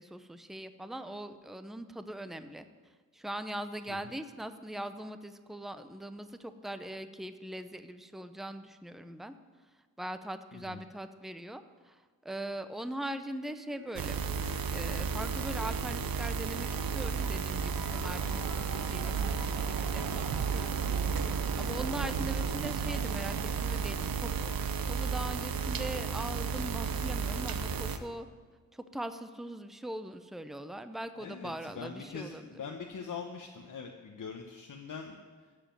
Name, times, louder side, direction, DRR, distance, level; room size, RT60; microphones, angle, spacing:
voice 1, 0.0-2.7 3.1-9.3 10.0-12.0 12.2-14.2 14.7-20.8 21.6-24.5 24.9-28.3 28.7-32.5, right 1 dB, ahead, 10 dB, 0.7 m, -41 dB
voice 2, 10.5-10.8 31.2-35.2, left 6 dB, 65° left, 2 dB, 1.0 m, -42 dB
sound 1, 13.5-22.9, right 1 dB, 50° right, 2.2 m, -50 dB
sound 2, 13.9-28.0, right 5 dB, 85° right, 0.7 m, -33 dB
14.0 x 5.0 x 9.1 m, 1.5 s
cardioid pair, 50°, 34 cm